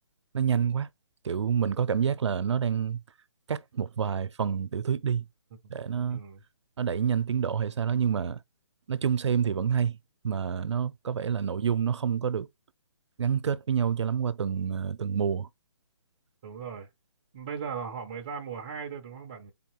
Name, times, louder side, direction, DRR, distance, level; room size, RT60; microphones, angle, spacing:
voice 1, 0.3-0.9 1.2-3.0 3.5-5.2 5.7-6.2 6.8-8.4 8.9-10.0 10.2-12.5 13.2-15.5, right 7 dB, 80° right, 0.5 m, -28 dB
voice 2, 6.1-6.4 16.4-16.9 17.3-19.5, right 6 dB, 15° right, 0.3 m, -38 dB
4.2 x 3.5 x 2.9 m
hypercardioid pair, 165°, 14 cm